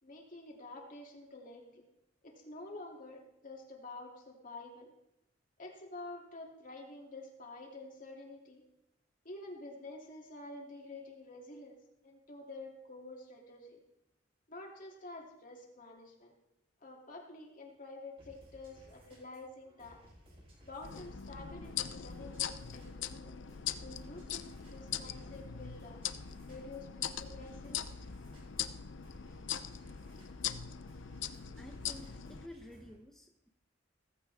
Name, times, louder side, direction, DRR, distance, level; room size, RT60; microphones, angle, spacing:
voice 1, 0.0-1.8 2.2-4.9 5.6-8.6 9.2-11.8 12.0-13.8 14.5-16.3 16.8-20.0 20.6-23.4 23.8-26.0 26.5-27.8, left 2 dB, 45° left, 0 dB, 2.8 m, -49 dB
sound 1, 18.2-32.9, equal, 30° right, 7.1 m, -59 dB
sound 2, 20.8-32.5, left 9 dB, 85° left, 0.7 m, -41 dB
voice 2, 31.6-33.5, left 1 dB, ahead, 2 dB, 0.9 m, -52 dB
17.0 x 15.0 x 3.6 m, 0.86 s
head